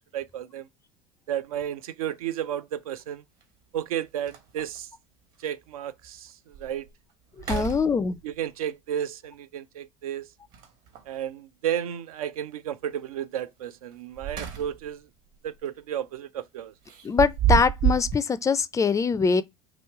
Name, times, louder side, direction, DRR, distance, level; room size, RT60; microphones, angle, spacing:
voice 1, 0.1-0.7 1.3-3.2 3.7-4.9 5.4-6.9 7.5-7.7 8.2-10.3 11.1-15.0 15.4-16.7, right 10 dB, 85° right, 0.4 m, -33 dB
sound 1, 1.5-1.7 3.4-3.5 3.9-4.0 4.3-4.8 5.4-5.5 6.0-6.1 6.5-6.9 7.3-8.4 10.5-11.2 13.9-15.0 15.3-15.6 16.9-18.2, right 10 dB, 55° right, 1.2 m, -29 dB
voice 2, 7.4-8.2 17.0-19.4, left 5 dB, 20° left, 0.3 m, -23 dB
3.1 x 2.9 x 4.5 m
hypercardioid pair, 85°, 18 cm